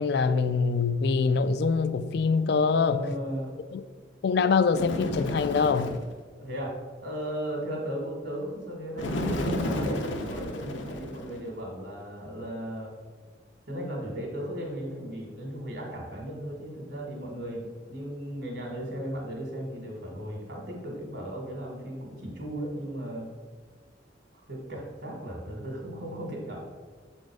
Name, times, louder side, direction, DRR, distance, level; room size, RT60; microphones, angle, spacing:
voice 1, 0.0-3.0 3.7-3.8 4.2-6.0, left 5 dB, 60° left, 11 dB, 0.3 m, -24 dB
voice 2, 2.5-3.6 6.4-6.7 7.0-12.9 13.7-23.3 24.3-26.6, equal, 65° right, 0 dB, 2.0 m, -36 dB
Bird, 4.7-6.1 9.0-11.5, left 1 dB, 80° left, 0.7 m, -32 dB
6.8 x 4.4 x 4.7 m, 1.5 s
head